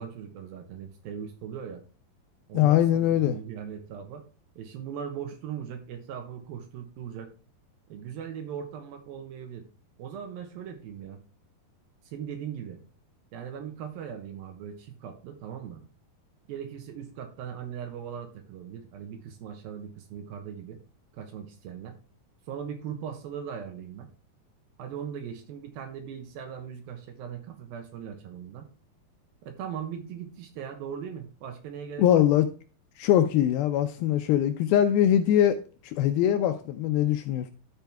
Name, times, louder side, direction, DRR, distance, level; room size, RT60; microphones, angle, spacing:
voice 1, 0.0-1.8 2.5-4.3 4.6-7.3 7.9-9.7 10.0-11.2 12.1-12.8 13.3-15.8 16.5-20.8 21.1-22.0 22.5-24.1 24.8-28.7 29.4-32.2, right 8 dB, 70° right, 2.7 m, -39 dB
voice 2, 2.5-3.4 32.0-32.5 33.0-37.5, left 11 dB, 80° left, 2.2 m, -22 dB
13.0 x 4.5 x 3.5 m
omnidirectional pair, 4.7 m